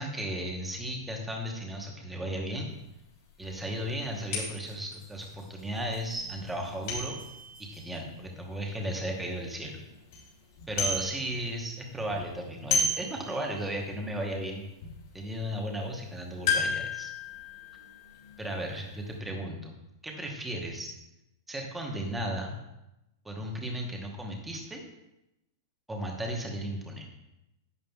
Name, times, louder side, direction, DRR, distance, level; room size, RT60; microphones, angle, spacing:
voice 1, 0.0-2.7 3.4-7.2 7.6-9.8 10.7-14.7 15.1-17.1 18.4-19.7 20.0-20.9 21.5-22.6 23.2-24.8 25.9-27.1, right 1 dB, 5° right, 0 dB, 1.0 m, -35 dB
sound 1, 2.8-2.9 3.4-3.5 4.3-9.0 9.5-9.6 9.9-10.2 10.5-11.6 11.9-13.9 14.3-14.4 14.8-15.0 16.5-18.9 19.1-19.2, left 3 dB, 55° left, 3.3 m, -33 dB
10.5 x 9.5 x 2.3 m, 0.91 s
supercardioid pair, 175°, 2 cm